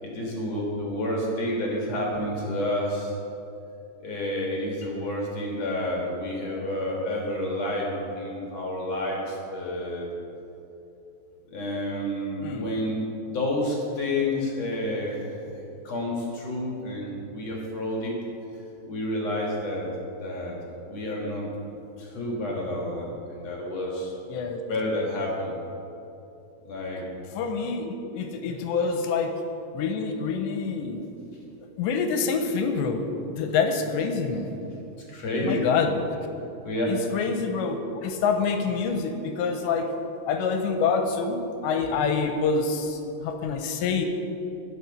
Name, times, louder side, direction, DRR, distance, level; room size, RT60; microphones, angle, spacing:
voice 1, 0.0-3.1 4.0-10.0 11.5-15.3 15.8-18.2 18.9-19.9 20.2-20.6 20.8-21.5 22.0-24.1 24.6-25.6 26.7-27.0 35.1-35.7 36.6-36.9, left 1 dB, 50° left, -2 dB, 2.0 m, -29 dB
voice 2, 24.3-24.6 27.3-29.3 29.7-31.1 31.8-34.5 35.4-36.0 36.9-39.9 40.3-44.1, left 5 dB, 80° left, 5 dB, 3.0 m, -26 dB
20.0 x 6.8 x 5.5 m, 2.9 s
omnidirectional pair, 5.3 m